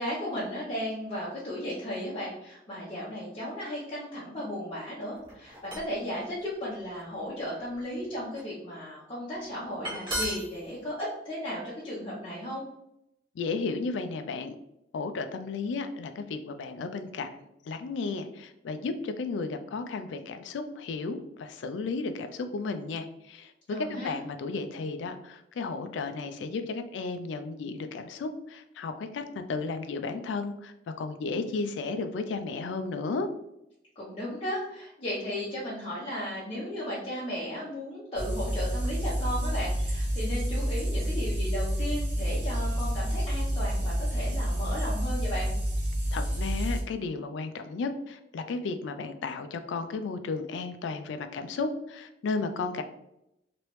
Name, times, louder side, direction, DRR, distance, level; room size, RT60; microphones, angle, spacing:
voice 1, 0.0-12.6 23.7-24.2 34.0-45.5, equal, 30° left, -8 dB, 0.7 m, -35 dB
sound 1, 5.2-6.0 6.7-7.0 7.6-8.4 9.6-9.7 9.8-10.6, equal, 30° right, 1.4 m, -34 dB
voice 2, 13.4-14.6 14.9-23.5 24.0-33.3 46.1-52.8, left 4 dB, 75° left, 8 dB, 0.3 m, -34 dB
sound 2, 38.2-46.8, equal, 70° right, 0.9 m, -29 dB
3.1 x 2.9 x 3.0 m, 0.84 s
head